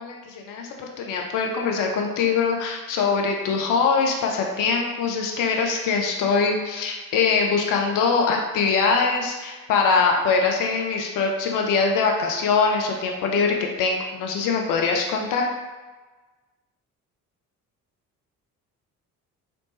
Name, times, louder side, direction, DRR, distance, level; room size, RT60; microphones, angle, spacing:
voice 1, 0.0-15.5, left 5 dB, 45° left, 1 dB, 0.6 m, -23 dB
3.0 x 2.9 x 3.1 m, 1.3 s
figure-of-eight pair, 45°, 44 cm